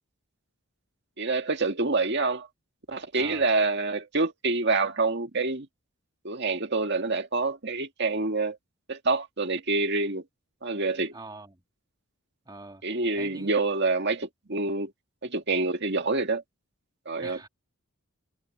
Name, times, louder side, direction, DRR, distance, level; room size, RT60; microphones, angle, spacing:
voice 1, 1.2-2.5 2.9-5.7 6.2-8.6 8.9-10.2 10.6-11.1 12.8-14.9 15.2-16.4 17.1-17.4, right 3 dB, 50° right, 2.0 m, -27 dB
voice 2, 3.1-3.5 11.1-11.6 12.5-12.8 13.1-13.5 17.2-17.5, right 2 dB, 20° right, 2.4 m, -43 dB
head